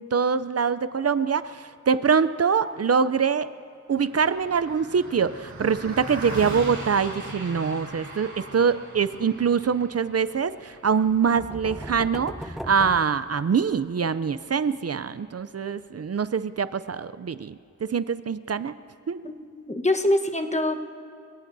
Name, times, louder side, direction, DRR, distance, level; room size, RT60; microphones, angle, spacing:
voice 1, 0.0-3.5 3.9-17.6 17.9-18.7 19.1-19.2, right 6 dB, 55° right, 15 dB, 0.5 m, -24 dB
Car passing by, 3.9-13.5, right 2 dB, 70° right, 2.7 m, -40 dB
sound 1, 11.0-13.9, equal, ahead, 0.6 m, -38 dB
voice 2, 19.2-20.8, left 1 dB, 20° left, 6 dB, 1.1 m, -24 dB
28.0 x 17.5 x 2.7 m, 2.5 s
wide cardioid pair, 55°, 31 cm